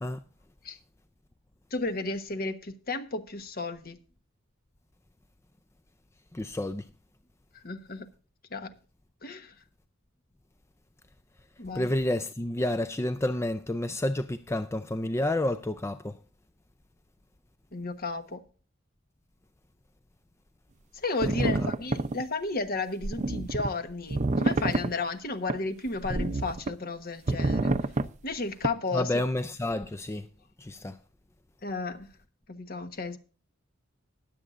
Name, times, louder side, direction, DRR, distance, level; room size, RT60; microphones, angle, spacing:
voice 1, 1.7-4.0 7.5-8.1 8.5-8.7 9.2-9.5 11.6-11.9 17.7-18.4 20.9-27.8 28.2-29.2 31.6-32.1 32.5-33.2, left 3 dB, 45° left, 1.2 m, -33 dB
voice 2, 6.3-6.9 11.7-16.2 21.4-21.7 28.9-30.3 30.6-31.0, left 1 dB, 15° left, 0.4 m, -30 dB
sound 1, 21.2-22.2 23.0-23.7 24.1-24.9 25.5-25.6 26.0-26.7 27.3-28.1 28.6-28.7, right 2 dB, 35° right, 0.6 m, -27 dB
20.0 x 7.9 x 2.5 m
head